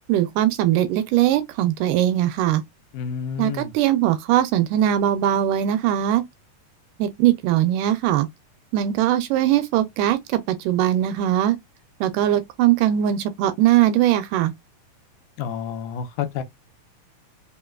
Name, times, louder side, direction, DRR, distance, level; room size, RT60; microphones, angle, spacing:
voice 1, 0.1-2.6 3.4-6.2 7.0-8.3 8.7-11.6 12.0-14.5, right 12 dB, 80° right, 2.1 m, -20 dB
voice 2, 2.9-3.7 15.4-16.4, left 7 dB, 75° left, 2.3 m, -29 dB
5.7 x 2.9 x 2.3 m
omnidirectional pair, 3.9 m